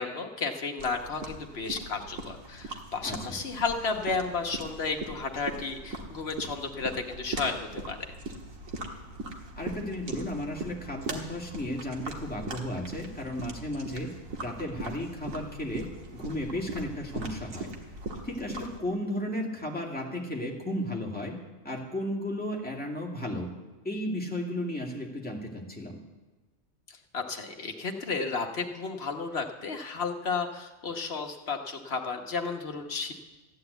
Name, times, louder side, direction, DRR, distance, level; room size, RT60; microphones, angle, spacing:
voice 1, 0.0-8.0 27.1-33.1, left 4 dB, 50° left, 4 dB, 1.4 m, -33 dB
sound 1, 0.8-18.8, right 2 dB, 80° right, 2.0 m, -40 dB
voice 2, 3.0-3.4 9.6-14.1 14.4-15.9 16.1-17.7 18.2-21.4 21.6-23.5 23.8-26.0, left 1 dB, 5° left, -2 dB, 2.1 m, -34 dB
14.5 x 9.5 x 8.1 m, 1.2 s
omnidirectional pair, 1.4 m